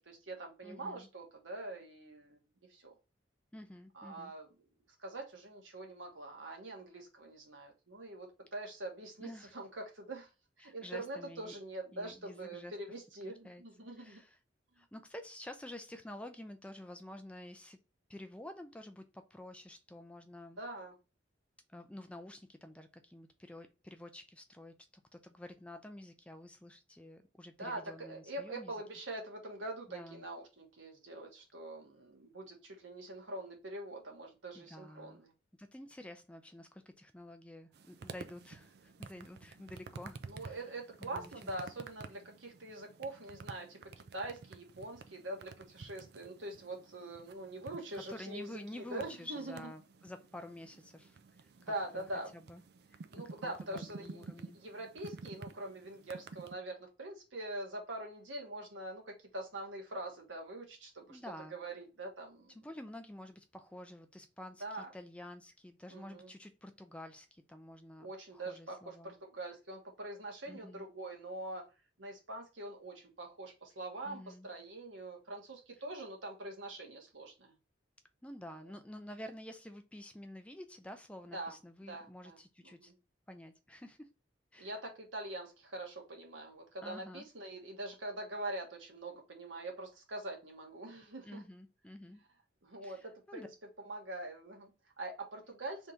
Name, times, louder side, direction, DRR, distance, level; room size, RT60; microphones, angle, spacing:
voice 1, 0.0-2.4 2.7-2.9 3.9-4.5 5.0-10.3 10.6-14.2 20.6-20.9 27.6-35.3 40.3-49.7 51.6-52.3 53.1-61.2 61.5-62.5 64.6-64.9 65.9-66.3 68.0-71.6 72.0-77.5 81.3-81.5 81.9-82.4 82.6-82.9 84.6-91.4 92.6-93.5 93.8-95.9, right 2 dB, 90° right, 1.4 m, -44 dB
voice 2, 0.6-1.1 3.5-4.3 9.2-9.5 10.6-11.6 11.9-12.7 13.2-13.6 14.0-14.4 14.8-17.8 18.1-20.6 21.7-24.7 25.1-28.7 29.9-30.2 34.5-35.2 35.6-40.6 41.0-41.5 47.9-52.0 52.3-52.6 52.9-54.6 61.1-61.6 62.6-69.2 70.5-70.8 74.0-74.5 78.2-82.9 83.3-84.1 84.5-84.7 86.8-87.3 91.3-92.2 92.8-93.5, left 1 dB, 5° left, 0.4 m, -50 dB
sound 1, 37.7-56.5, right 4 dB, 55° right, 0.4 m, -51 dB
3.5 x 2.7 x 4.3 m
head